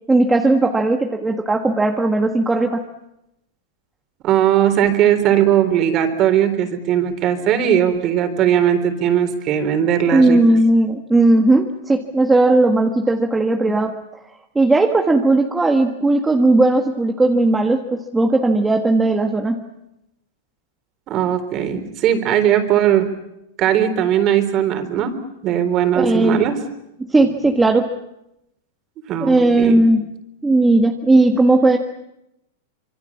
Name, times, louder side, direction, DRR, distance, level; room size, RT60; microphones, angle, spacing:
voice 1, 0.1-2.8 10.1-14.0 14.5-19.6 25.9-26.4 27.1-27.9 29.2-30.0 30.4-31.8, right 2 dB, 10° right, 3 dB, 1.6 m, -16 dB
voice 2, 4.2-10.4 13.6-13.8 21.1-23.1 23.6-25.1 25.4-26.6 29.1-29.8, right 10 dB, 35° right, 9 dB, 3.9 m, -18 dB
26.0 x 24.5 x 7.4 m, 0.85 s
supercardioid pair, 140°, 0 cm